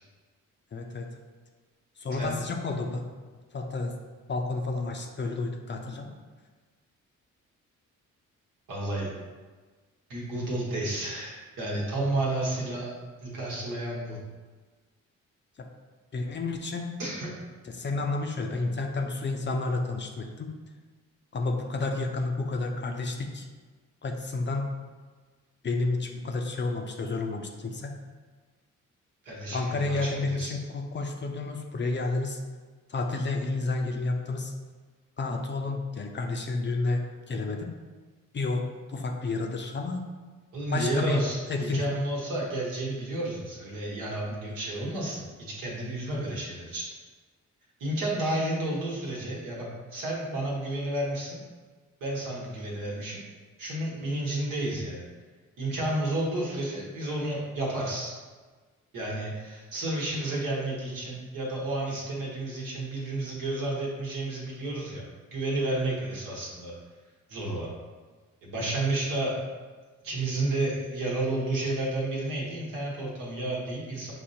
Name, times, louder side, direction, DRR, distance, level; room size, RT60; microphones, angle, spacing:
voice 1, 0.7-1.1 2.0-3.1 3.5-3.9 4.3-6.1 16.1-16.9 17.6-20.5 21.3-23.5 24.0-24.7 25.6-27.9 29.5-32.4 32.9-34.5 35.2-37.7 38.3-40.0 40.7-41.2 41.5-41.8 46.1-46.3, left 3 dB, 35° left, 3 dB, 0.5 m, -30 dB
voice 2, 8.7-9.1 10.1-12.9 13.2-14.2 17.0-17.3 29.2-30.5 40.5-46.8 47.8-51.4 52.0-53.2 53.6-55.0 55.6-58.1 58.9-65.0 65.3-66.7 67.3-67.7 68.4-69.4 70.0-74.1, right 2 dB, 80° right, -4 dB, 1.2 m, -31 dB
5.7 x 2.1 x 2.7 m, 1.4 s
supercardioid pair, 60°, 32 cm